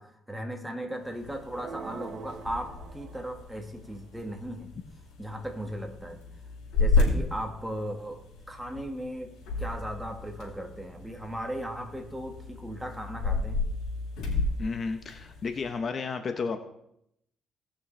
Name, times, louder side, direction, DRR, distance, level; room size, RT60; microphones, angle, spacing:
voice 1, 0.0-4.7 5.2-6.2 6.8-8.2 8.5-13.6, equal, 5° right, 3 dB, 1.7 m, -37 dB
sound 1, 1.0-15.7, left 3 dB, 85° left, 3.6 m, -33 dB
sound 2, 1.5-3.6, right 6 dB, 60° right, 0.7 m, -44 dB
voice 2, 14.6-16.6, left 4 dB, 45° left, 8 dB, 0.8 m, -32 dB
18.0 x 6.3 x 3.3 m, 0.78 s
cardioid pair, 90°, 0 cm